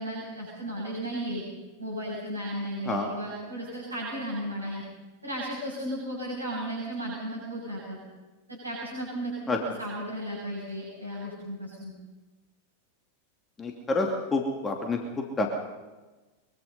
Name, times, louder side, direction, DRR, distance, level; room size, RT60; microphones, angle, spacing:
voice 1, 0.0-1.4 1.8-4.8 5.2-8.0 8.5-9.3 9.6-11.9, equal, 80° right, -6 dB, 7.7 m, -34 dB
voice 2, 13.6-15.0 15.4-15.5, left 3 dB, 15° left, 3 dB, 2.8 m, -27 dB
24.0 x 23.0 x 5.5 m, 1.2 s
figure-of-eight pair, 90°, 0 cm